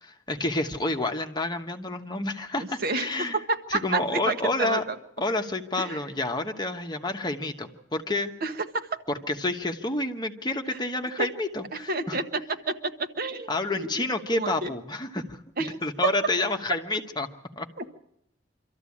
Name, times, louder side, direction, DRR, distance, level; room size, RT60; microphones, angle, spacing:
voice 1, 0.0-3.4 3.7-4.8 5.2-8.3 9.1-12.2 13.5-17.3 17.6-17.7, left 2 dB, 25° left, 5 dB, 1.2 m, -29 dB
voice 2, 2.6-5.0 5.8-6.0 8.4-9.0 11.2-11.3 11.7-13.5 13.8-14.0 14.3-14.7 15.6-16.1 17.8-17.9, right 3 dB, 55° right, 7 dB, 1.3 m, -30 dB
25.0 x 13.5 x 8.6 m, 0.77 s
head